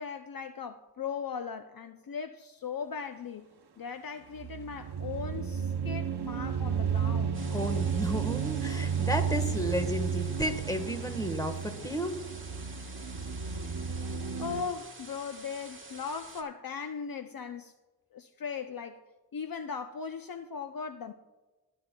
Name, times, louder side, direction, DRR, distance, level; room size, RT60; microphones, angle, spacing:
voice 1, 0.0-3.5 3.8-7.4 14.4-17.7 18.1-19.0 19.3-21.1, left 6 dB, 60° left, 0.5 m, -38 dB
sound 1, 4.4-14.6, right 7 dB, 70° right, 0.8 m, -32 dB
sound 2, 7.3-16.4, right 2 dB, 30° right, 1.5 m, -49 dB
voice 2, 7.5-12.2, equal, 10° left, 1.3 m, -32 dB
19.0 x 9.8 x 2.2 m
wide cardioid pair, 50°, 40 cm